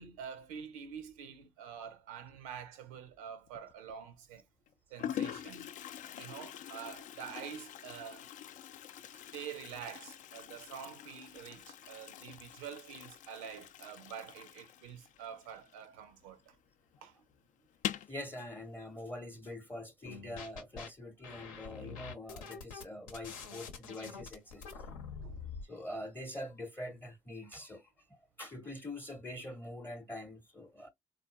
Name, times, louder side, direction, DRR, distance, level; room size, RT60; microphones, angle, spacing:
voice 1, 0.0-4.4 4.9-5.8 6.1-8.3 9.1-16.6 17.0-17.2 25.2-25.4, right 8 dB, 70° right, 0.6 m, -47 dB
Toilet flush, 3.5-3.9 4.7-4.8 5.0-16.3 16.5-16.6 16.9-17.0 17.7-18.2, left 10 dB, 45° left, 0.4 m, -44 dB
voice 2, 18.1-24.7 25.6-30.9, left 1 dB, 10° left, 0.7 m, -44 dB
sound 1, 20.1-20.9 21.2-25.7, left 5 dB, 75° left, 0.7 m, -46 dB
3.7 x 2.3 x 2.3 m
figure-of-eight pair, 45°, 18 cm